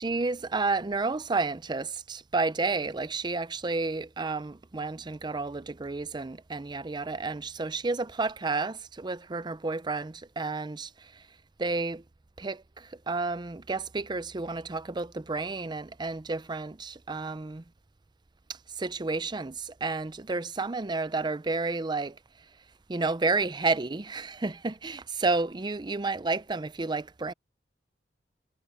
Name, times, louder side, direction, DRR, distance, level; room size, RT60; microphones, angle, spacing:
voice 1, 0.0-11.2 11.6-12.0 12.4-17.6 18.8-22.2 22.9-27.3, right 3 dB, 25° right, 0.5 m, -31 dB
head